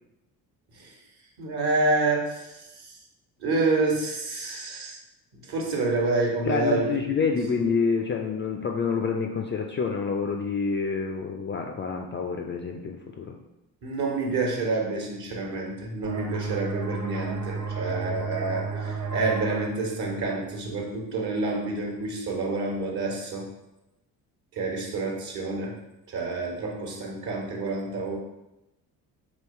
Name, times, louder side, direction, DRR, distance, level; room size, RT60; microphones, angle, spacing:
voice 1, 1.4-3.0 3.4-5.0 5.4-6.9 7.3-7.4 13.8-23.5 24.5-25.7 26.1-28.2, right 3 dB, 50° right, -1 dB, 1.3 m, -28 dB
voice 2, 6.5-13.4, left 5 dB, 25° left, 2 dB, 0.4 m, -27 dB
sound 1, 16.0-21.4, right 5 dB, 35° right, 0.6 m, -33 dB
3.1 x 3.1 x 4.2 m, 0.94 s
hypercardioid pair, 50°, 49 cm